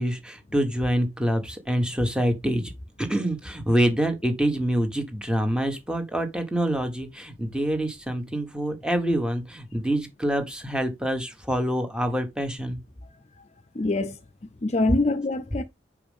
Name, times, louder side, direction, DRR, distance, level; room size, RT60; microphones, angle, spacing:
voice 1, 0.0-2.7 3.0-12.8, right 1 dB, 5° right, 1.4 m, -26 dB
voice 2, 13.7-14.2 14.6-15.6, left 2 dB, 35° left, 0.5 m, -24 dB
6.1 x 4.9 x 3.6 m
head